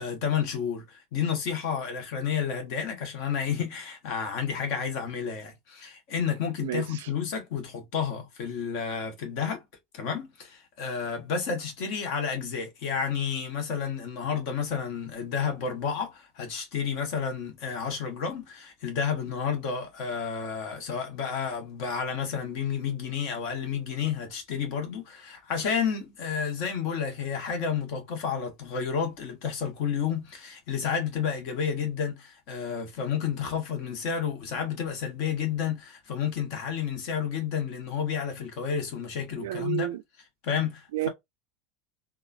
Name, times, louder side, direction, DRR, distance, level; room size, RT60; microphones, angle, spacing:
voice 1, 0.0-9.6 9.9-39.9 40.4-41.1, left 7 dB, 55° left, 1.1 m, -31 dB
voice 2, 39.4-40.0 40.9-41.1, right 14 dB, 65° right, 0.3 m, -30 dB
3.5 x 2.4 x 2.4 m
figure-of-eight pair, 75°, 0 cm